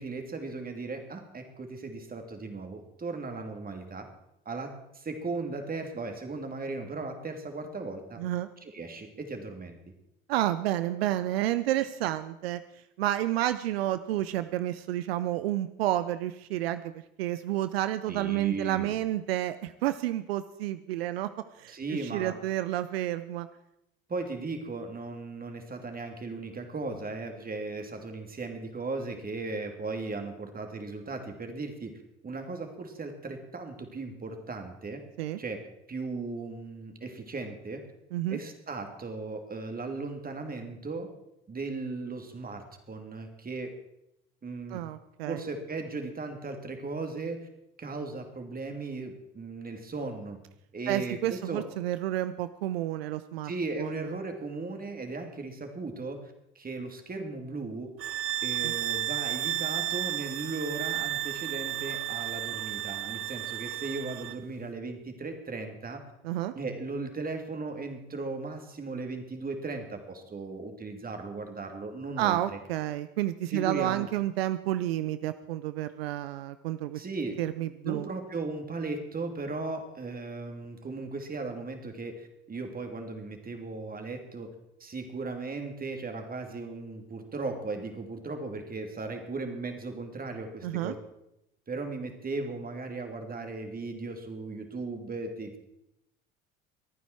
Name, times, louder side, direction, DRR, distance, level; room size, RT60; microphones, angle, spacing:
voice 1, 0.0-4.1 4.4-8.2 8.6-9.8 18.1-18.9 21.7-22.4 24.1-35.0 35.4-35.6 35.9-37.9 38.3-41.1 41.5-43.7 44.4-44.8 45.3-47.5 47.8-50.4 50.7-51.7 53.4-57.9 58.4-66.1 66.5-72.6 73.5-74.1 76.9-77.4 77.8-84.5 84.8-91.0 91.7-95.6, right 3 dB, 30° right, 5 dB, 3.0 m, -37 dB
voice 2, 8.2-8.5 10.3-12.6 13.0-16.9 17.2-21.3 21.6-23.5 35.2-35.4 38.1-38.4 44.7-45.4 50.9-53.5 53.8-53.9 58.6-58.7 66.2-66.5 72.2-77.0 77.4-78.1 90.6-90.9, right 14 dB, 85° right, 13 dB, 0.6 m, -30 dB
sound 1, 58.0-64.4, right 13 dB, 45° right, 0.6 m, -33 dB
24.0 x 9.4 x 4.6 m, 0.82 s
hypercardioid pair, 65°, 30 cm